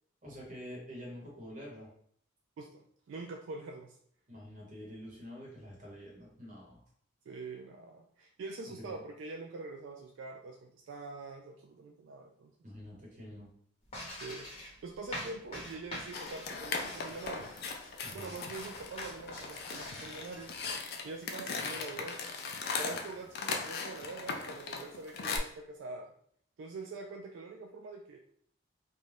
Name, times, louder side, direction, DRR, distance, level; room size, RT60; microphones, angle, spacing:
voice 1, 0.2-1.9 4.3-6.8 8.7-9.0 12.6-13.5 18.0-18.4 21.5-21.7, equal, 40° right, -3 dB, 1.0 m, -47 dB
voice 2, 2.6-3.9 7.3-12.5 14.1-17.5 18.1-20.5 21.0-22.2 22.8-26.1 26.6-28.2, right 3 dB, 75° right, 2 dB, 0.3 m, -44 dB
sound 1, 13.9-20.7, left 1 dB, 30° left, 0.9 m, -45 dB
sound 2, 16.1-25.4, left 4 dB, 55° left, 0.4 m, -39 dB
2.6 x 2.2 x 3.2 m, 0.63 s
head